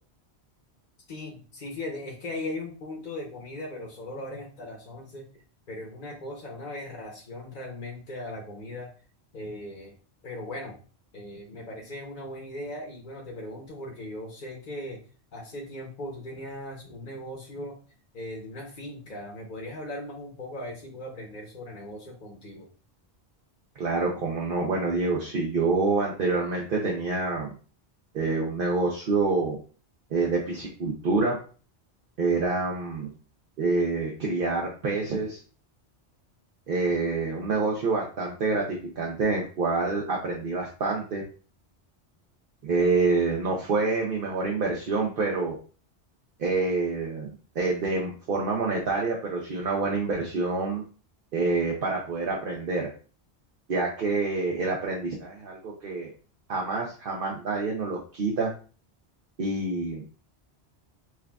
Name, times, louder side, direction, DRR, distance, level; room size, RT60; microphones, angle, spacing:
voice 1, 1.1-5.3 5.7-8.9 9.3-10.0 10.2-10.8 11.1-15.0 15.3-17.8 18.1-22.7, left 1 dB, 50° left, -1 dB, 0.9 m, -38 dB
voice 2, 23.8-27.5 28.1-29.6 30.1-31.4 32.2-33.1 33.6-35.4 36.7-41.2 42.6-45.6 46.4-50.8 51.3-52.9 53.7-56.1 56.5-58.5 59.4-60.0, right 3 dB, 60° right, -1 dB, 0.8 m, -27 dB
5.8 x 2.4 x 2.2 m, 0.38 s
omnidirectional pair, 1.1 m